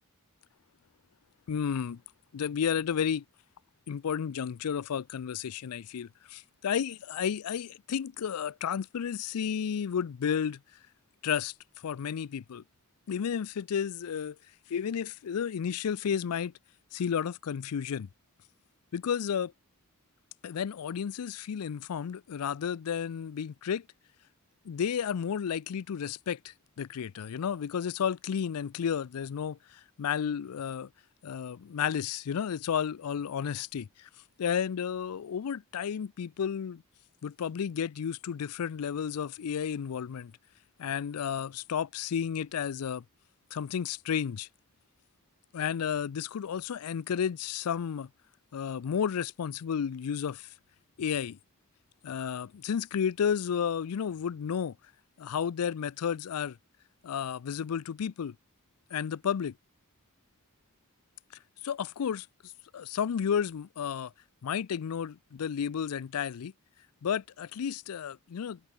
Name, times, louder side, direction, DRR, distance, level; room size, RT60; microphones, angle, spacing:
voice 1, 1.5-2.0 2.3-3.2 3.9-10.6 11.2-11.5 11.8-12.6 13.1-14.4 14.7-16.5 16.9-18.1 18.9-19.5 20.4-23.9 24.7-30.9 31.2-34.1 34.4-36.8 37.2-40.3 40.8-43.0 43.5-44.5 45.5-48.1 48.5-50.5 51.0-51.4 52.0-54.8 55.2-56.6 57.0-58.3 58.9-59.5 61.6-62.3 62.7-64.1 64.4-66.5 67.0-68.6, left 7 dB, 85° left, 0.4 m, -32 dB
head